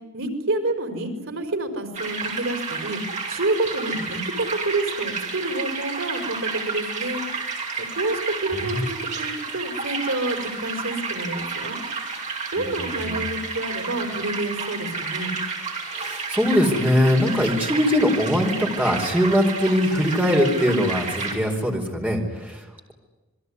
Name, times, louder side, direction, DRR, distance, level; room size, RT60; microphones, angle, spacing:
voice 1, 0.1-3.0 3.3-7.2 7.8-11.8 12.5-15.3, right 2 dB, 80° right, 8 dB, 5.0 m, -28 dB
sound 1, 1.9-21.3, right 4 dB, 35° right, 5.9 m, -31 dB
voice 2, 8.5-8.8 12.6-13.2 15.9-22.9, equal, 10° right, 2 dB, 4.6 m, -22 dB
27.5 x 22.0 x 9.7 m, 1.1 s
head